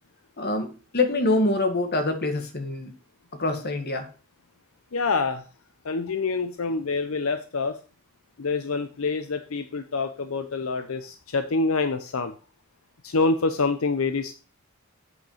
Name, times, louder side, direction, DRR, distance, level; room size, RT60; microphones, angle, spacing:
voice 1, 0.4-2.9 3.3-4.1, left 2 dB, 50° left, 6 dB, 1.8 m, -25 dB
voice 2, 4.9-5.5 5.8-7.8 8.4-12.3 13.0-14.3, left 3 dB, 80° left, 9 dB, 0.7 m, -26 dB
8.0 x 5.9 x 5.7 m, 0.36 s
head